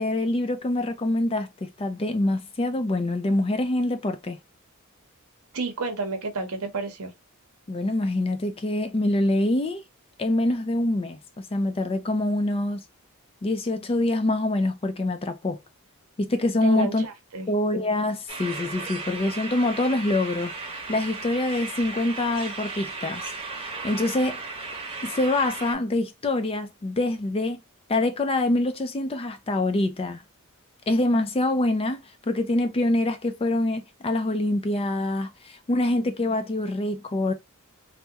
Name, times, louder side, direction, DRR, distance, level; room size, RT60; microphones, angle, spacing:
voice 1, 0.0-4.4 7.7-9.8 10.2-12.8 13.4-15.6 16.2-17.1 17.5-20.5 20.9-23.2 23.6-24.4 25.0-27.6 27.9-30.2 30.9-37.3, left 2 dB, 25° left, 0.4 m, -25 dB
voice 2, 5.5-7.1 16.6-17.5, right 3 dB, 75° right, 0.8 m, -30 dB
sound 1, 18.3-25.7, right 3 dB, 25° right, 1.0 m, -36 dB
3.4 x 2.1 x 2.8 m
head